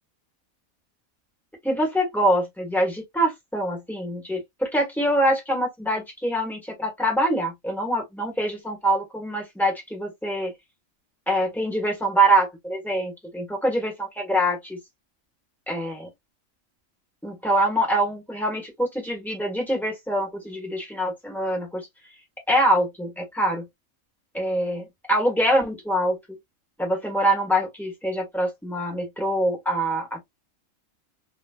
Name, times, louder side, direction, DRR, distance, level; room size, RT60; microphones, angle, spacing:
voice 1, 1.6-10.5 11.3-14.8 15.7-16.1 17.2-21.9 22.5-23.7 24.3-26.4 26.8-30.2, right 1 dB, ahead, 1.4 m, -24 dB
4.0 x 2.5 x 2.3 m
omnidirectional pair, 1.4 m